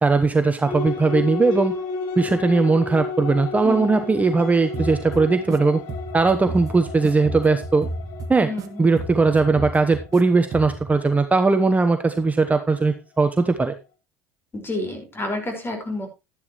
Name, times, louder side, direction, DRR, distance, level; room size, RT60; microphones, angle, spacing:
voice 1, 0.0-1.8 2.2-5.8 6.1-7.9 8.3-8.5 8.8-13.7, right 3 dB, 15° right, 7 dB, 1.1 m, -19 dB
sound 1, 0.7-12.6, left 4 dB, 60° left, 2.3 m, -33 dB
voice 2, 3.6-4.1 8.4-8.9 14.5-16.1, left 2 dB, 25° left, 4 dB, 5.2 m, -29 dB
sound 2, 4.7-5.6 5.9-8.7 9.0-10.2 10.5-10.9, right 2 dB, 45° right, 1.9 m, -33 dB
12.0 x 11.0 x 3.2 m, 0.27 s
hypercardioid pair, 70°, 9 cm